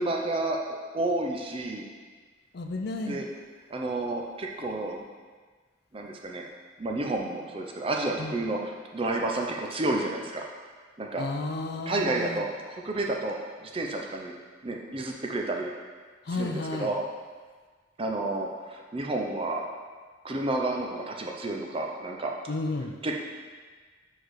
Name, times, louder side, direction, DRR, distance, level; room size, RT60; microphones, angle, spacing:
voice 1, 0.0-1.9 3.1-3.3 3.7-5.0 5.9-6.4 6.8-10.5 11.0-11.2 11.9-13.4 13.6-14.3 14.6-15.7 16.3-17.0 18.0-19.6 20.2-22.3 23.0-23.1, right 2 dB, 30° right, 1 dB, 0.5 m, -30 dB
voice 2, 2.5-3.2 8.2-8.4 11.2-12.4 16.3-16.9 22.5-23.0, left 2 dB, 55° left, 4 dB, 0.5 m, -32 dB
4.8 x 4.7 x 4.6 m, 1.5 s
head